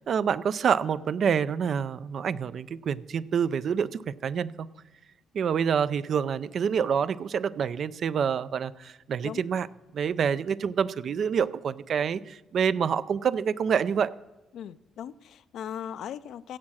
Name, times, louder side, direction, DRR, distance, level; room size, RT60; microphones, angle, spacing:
voice 1, 0.1-4.7 5.3-9.7 9.9-14.1, right 7 dB, 60° right, 16 dB, 0.5 m, -27 dB
voice 2, 14.5-16.6, left 9 dB, 75° left, 15 dB, 0.5 m, -38 dB
16.0 x 7.4 x 6.4 m, 1.1 s
cardioid pair, 90°, 0 cm